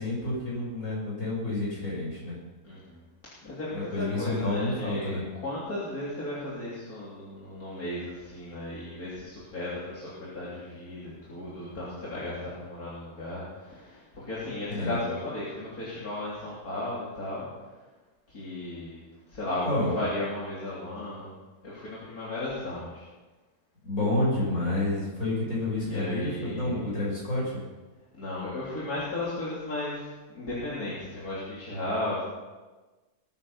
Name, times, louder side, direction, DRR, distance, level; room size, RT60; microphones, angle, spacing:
voice 1, 0.0-2.3 3.7-5.2 14.7-15.0 19.6-19.9 23.8-27.6, left 2 dB, 60° left, -5 dB, 7.1 m, -29 dB
voice 2, 2.6-3.0 3.4-3.9 4.2-17.5 18.3-19.0 19.3-19.7 19.9-21.3 21.6-23.1 25.8-27.0 28.1-32.2, left 1 dB, 80° left, -8 dB, 3.9 m, -35 dB
20.0 x 9.9 x 5.6 m, 1.2 s
omnidirectional pair, 1.5 m